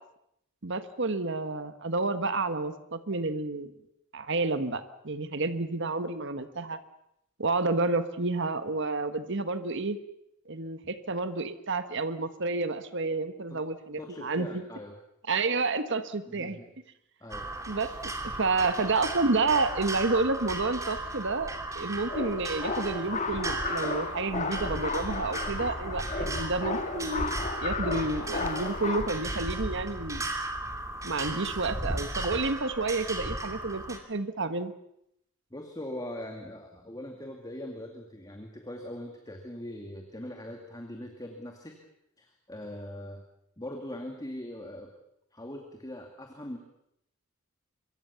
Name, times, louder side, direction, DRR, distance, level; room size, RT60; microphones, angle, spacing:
voice 1, 0.6-3.7 4.1-6.8 7.4-10.0 10.5-14.6 15.3-16.6 17.7-17.9 18.2-27.3 27.6-30.2 31.0-34.7, right 3 dB, 55° right, 10 dB, 1.4 m, -30 dB
voice 2, 14.0-15.0 16.3-16.7 17.2-17.5 26.2-26.4 35.5-41.7 42.2-43.2 43.6-44.9 45.3-46.6, left 1 dB, 15° left, 3 dB, 2.4 m, -41 dB
sound 1, 17.3-34.0, right 2 dB, 15° right, 2.8 m, -36 dB
sound 2, 22.1-29.1, left 3 dB, 35° left, 1.8 m, -34 dB
25.5 x 23.5 x 7.0 m, 0.78 s
head